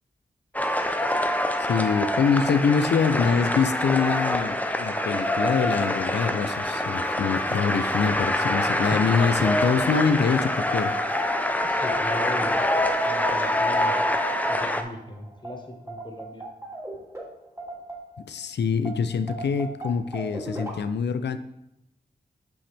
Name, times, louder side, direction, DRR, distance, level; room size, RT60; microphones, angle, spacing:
sound 1, 0.5-14.8, left 1 dB, 10° left, 0.7 m, -25 dB
sound 2, 0.8-18.4 18.8-20.7, right 2 dB, 20° right, 2.7 m, -41 dB
voice 1, 1.6-11.3 18.3-21.4, left 5 dB, 90° left, 11 dB, 0.5 m, -25 dB
voice 2, 11.7-13.9 14.5-16.4, left 1 dB, 25° left, 3 dB, 1.5 m, -38 dB
7.9 x 5.7 x 3.4 m, 0.84 s
cardioid pair, 40°, 17 cm